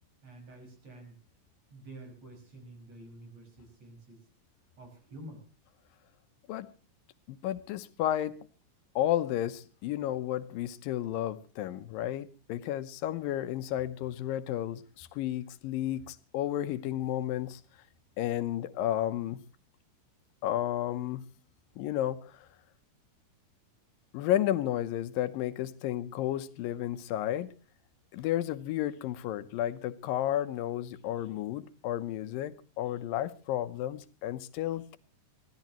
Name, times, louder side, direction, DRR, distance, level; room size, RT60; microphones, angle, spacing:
voice 1, 0.2-1.2 1.7-4.2 4.8-5.4, right 1 dB, 50° right, 6.7 m, -49 dB
voice 2, 7.3-8.4 9.0-17.6 18.2-19.4 20.4-21.2 21.8-22.5 24.1-27.5 28.1-35.0, left 12 dB, 90° left, 2.6 m, -32 dB
24.0 x 16.5 x 3.0 m
omnidirectional pair, 3.9 m